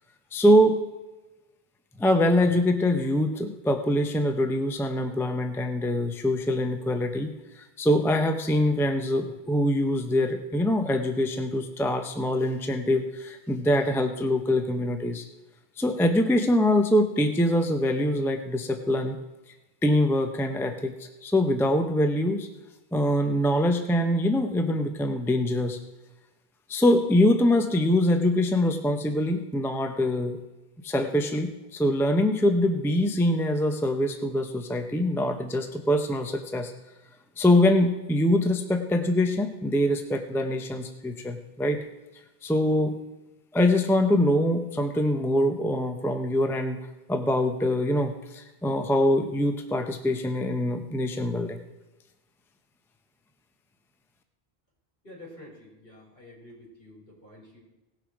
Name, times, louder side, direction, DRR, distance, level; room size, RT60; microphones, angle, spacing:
voice 1, 0.3-0.8 2.0-7.3 7.6-15.2 15.8-19.2 19.8-20.9 21.2-22.5 22.9-25.8 26.7-30.4 30.8-36.7 37.4-41.8 42.4-43.0 43.5-51.6, left 1 dB, 5° left, 6 dB, 0.6 m, -24 dB
voice 2, 55.0-57.6, left 1 dB, 65° left, -5 dB, 5.1 m, -48 dB
18.0 x 6.4 x 4.9 m, 1.1 s
omnidirectional pair, 1.1 m